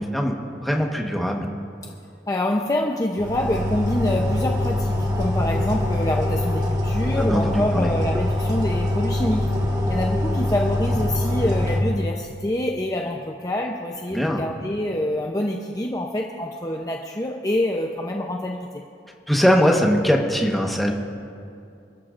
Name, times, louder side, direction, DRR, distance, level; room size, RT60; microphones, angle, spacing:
voice 1, 0.0-1.5 7.2-7.9 14.1-14.4 19.3-20.9, equal, ahead, 0 dB, 1.3 m, -21 dB
voice 2, 2.3-9.5 9.9-18.8, left 1 dB, 20° left, 0 dB, 0.7 m, -26 dB
sound 1, 3.2-11.8, left 1 dB, 20° right, 1.6 m, -23 dB
28.0 x 13.5 x 2.6 m, 2.5 s
head